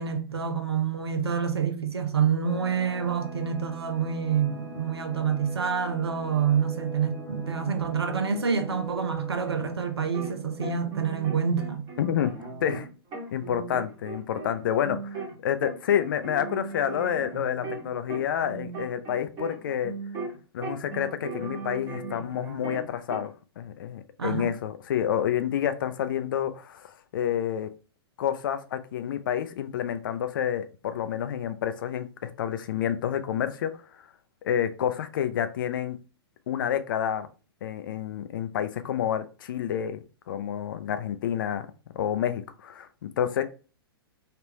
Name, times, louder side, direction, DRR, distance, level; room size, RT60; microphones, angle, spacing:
voice 1, 0.0-11.9 24.2-24.5, right 7 dB, 80° right, 0.6 m, -27 dB
sound 1, 2.4-11.8, equal, 5° left, 0.7 m, -43 dB
sound 2, 9.5-10.3 10.6-15.4 15.6-20.4 20.6-23.3, right 4 dB, 30° right, 1.2 m, -38 dB
voice 2, 12.0-12.3 12.6-12.9 13.3-19.9 20.5-27.7 28.2-33.8 34.4-36.0 36.5-37.3 37.6-41.7 41.9-43.4, left 9 dB, 55° left, 0.4 m, -29 dB
3.3 x 2.5 x 2.9 m
figure-of-eight pair, 105°, 13 cm